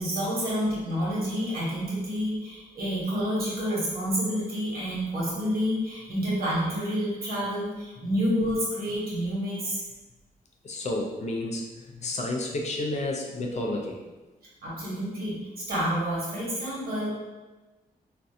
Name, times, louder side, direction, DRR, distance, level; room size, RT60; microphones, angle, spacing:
voice 1, 0.0-9.8 14.6-17.1, equal, 75° right, -7 dB, 1.1 m, -29 dB
voice 2, 10.6-11.7 12.0-14.0, left 2 dB, 45° left, 0 dB, 0.4 m, -30 dB
2.5 x 2.1 x 2.6 m, 1.2 s
cardioid pair, 105°, 16 cm